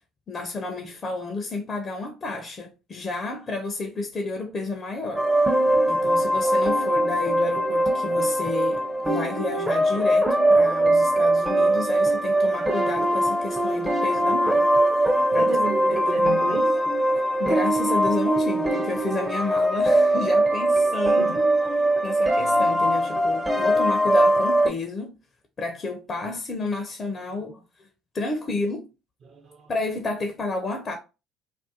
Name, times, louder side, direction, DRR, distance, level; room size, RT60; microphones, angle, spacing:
voice 1, 0.3-5.2 5.9-14.7 15.0-15.6 15.9-16.4 17.4-21.5 22.0-25.2 25.6-27.9 28.1-28.9 29.7-31.0, left 3 dB, 40° left, 0.4 m, -31 dB
sound 1, 5.2-24.7, right 1 dB, 15° right, 0.5 m, -21 dB
voice 2, 15.4-16.7 21.2-21.4 29.3-29.7, right 4 dB, 50° right, 0.6 m, -32 dB
2.4 x 2.2 x 2.7 m
hypercardioid pair, 55°, 0 cm